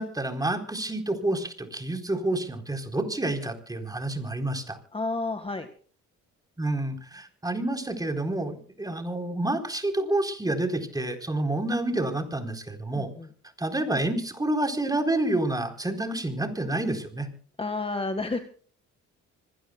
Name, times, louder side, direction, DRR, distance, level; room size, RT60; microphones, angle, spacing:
voice 1, 0.0-4.8 6.6-13.1 13.6-17.3, right 2 dB, 10° right, 5 dB, 4.1 m, -28 dB
voice 2, 4.9-5.7 12.9-13.3 17.6-18.4, left 3 dB, 20° left, 7 dB, 1.8 m, -30 dB
25.5 x 17.5 x 2.3 m, 0.43 s
cardioid pair, 110°, 29 cm